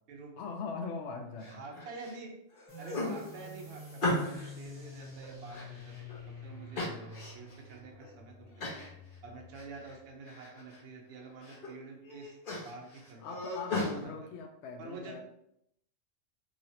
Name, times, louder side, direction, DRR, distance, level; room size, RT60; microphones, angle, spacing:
voice 1, 0.4-1.6 13.2-15.2, left 4 dB, 75° left, 4 dB, 0.9 m, -41 dB
sound 1, 1.4-2.2 2.5-4.5 5.0-6.2 6.7-7.6 8.0-8.1 8.6-8.9 9.3-10.0 10.3-10.8 11.2-11.7 12.0-13.9, left 2 dB, 50° left, 1.0 m, -37 dB
voice 2, 1.5-2.3 2.8-5.9 6.3-8.8 9.2-13.4 13.7-14.1 14.8-15.2, right 3 dB, 65° right, 0 dB, 0.8 m, -48 dB
sound 2, 2.7-9.9, left 1 dB, 10° right, 1.2 m, -48 dB
2.9 x 2.7 x 2.8 m, 0.76 s
omnidirectional pair, 1.2 m